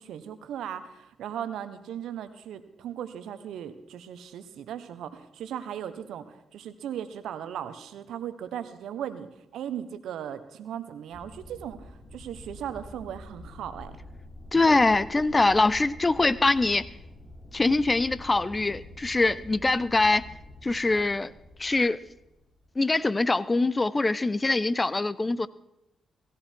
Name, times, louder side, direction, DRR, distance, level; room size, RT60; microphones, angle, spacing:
voice 1, 0.0-14.0, right 9 dB, 75° right, 11 dB, 1.2 m, -37 dB
sound 1, 11.1-23.2 24.3-24.5, left 1 dB, 45° left, 4.0 m, -47 dB
voice 2, 14.5-16.9 17.5-20.2 20.6-21.3 21.6-22.0 22.8-25.5, left 2 dB, 30° left, 18 dB, 0.8 m, -23 dB
17.5 x 15.5 x 4.6 m, 0.85 s
supercardioid pair, 45°, 0 cm